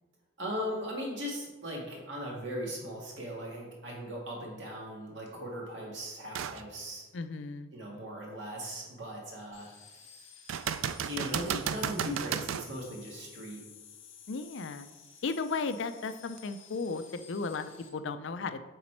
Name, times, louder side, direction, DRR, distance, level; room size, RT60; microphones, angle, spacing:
voice 1, 0.4-7.0 7.7-10.3 11.1-13.6, equal, 65° right, -2 dB, 2.0 m, -39 dB
sound 1, 6.3-6.6 7.2-7.3 10.5-12.7 16.4-16.5, right 8 dB, 85° right, 0.4 m, -33 dB
voice 2, 7.1-7.7 14.3-14.9 15.2-18.6, left 4 dB, 65° left, 10 dB, 0.5 m, -35 dB
sound 2, 9.5-17.9, left 7 dB, 80° left, 1.4 m, -54 dB
8.0 x 4.2 x 4.4 m, 1.2 s
head